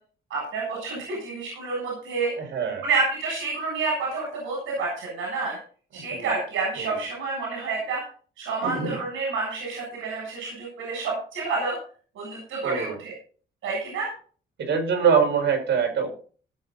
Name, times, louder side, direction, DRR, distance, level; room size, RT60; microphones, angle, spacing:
voice 1, 0.3-2.3 2.8-5.6 5.9-8.0 8.4-11.8 12.1-13.1 13.6-14.1, right 4 dB, 80° right, -2 dB, 7.6 m, -29 dB
voice 2, 2.4-2.8 5.9-6.3 6.8-7.0 8.6-9.0 12.6-13.0 14.6-16.1, right 6 dB, 65° right, 3 dB, 5.3 m, -24 dB
19.0 x 7.7 x 4.1 m, 0.42 s
cardioid pair, 90°, 20 cm